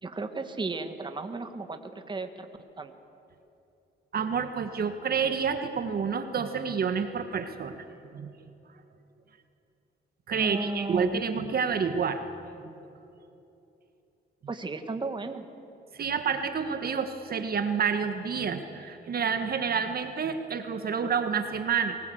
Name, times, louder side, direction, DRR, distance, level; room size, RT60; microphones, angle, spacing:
voice 1, 0.0-2.5 2.8-2.9 10.4-11.5 14.5-15.5, right 3 dB, 25° right, 7 dB, 1.6 m, -34 dB
voice 2, 4.1-7.8 8.1-8.3 10.3-12.2 12.6-12.7 15.9-22.0, right 6 dB, 50° right, 8 dB, 1.5 m, -29 dB
23.5 x 19.5 x 7.9 m, 2.8 s
cardioid pair, 90°, 20 cm